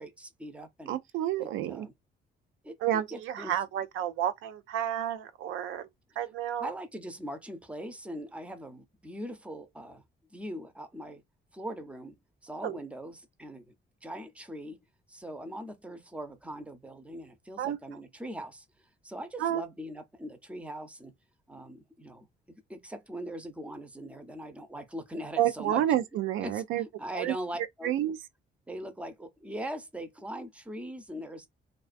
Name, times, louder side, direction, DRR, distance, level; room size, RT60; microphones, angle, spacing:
voice 1, 0.0-1.0 1.4-1.9 2.6-3.5 6.6-10.0 10.3-11.2 11.5-12.2 12.4-13.7 14.0-14.8 15.1-18.6 19.0-21.1 21.5-25.8 26.4-28.1 28.7-31.5, equal, 5° right, 0.6 m, -41 dB
voice 2, 0.9-1.9 2.8-5.9 6.2-6.7 12.6-12.8 17.6-17.8 19.4-19.6 25.4-26.8 27.2-27.3 27.8-28.2, right 11 dB, 85° right, 0.4 m, -30 dB
2.3 x 2.3 x 2.4 m
cardioid pair, 90°, 20 cm